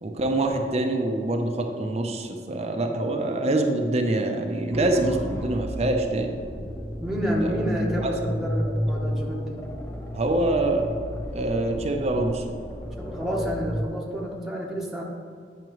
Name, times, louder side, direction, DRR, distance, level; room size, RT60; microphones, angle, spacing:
voice 1, 0.0-6.4 7.4-7.6 8.0-8.1 8.6-8.7 10.1-10.9 11.3-12.4, right 2 dB, 40° right, 3 dB, 0.6 m, -25 dB
sound 1, 4.7-13.9, equal, 15° left, 0.5 m, -32 dB
voice 2, 7.0-9.6 13.0-15.0, equal, ahead, -4 dB, 0.9 m, -29 dB
9.2 x 5.8 x 3.0 m, 2.1 s
head